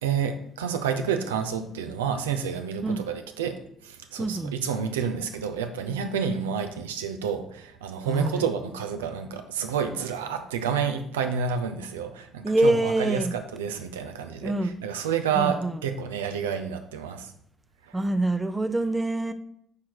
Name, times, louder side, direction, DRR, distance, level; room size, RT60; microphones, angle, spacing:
voice 1, 0.0-17.3 17.8-18.0, right 7 dB, 80° right, 7 dB, 0.6 m, -29 dB
voice 2, 4.2-4.5 8.0-8.4 12.4-13.3 14.4-14.8 15.3-15.8 17.9-19.3, right 2 dB, 15° right, 10 dB, 0.6 m, -25 dB
8.4 x 4.8 x 4.7 m, 0.71 s
figure-of-eight pair, 50°, 0 cm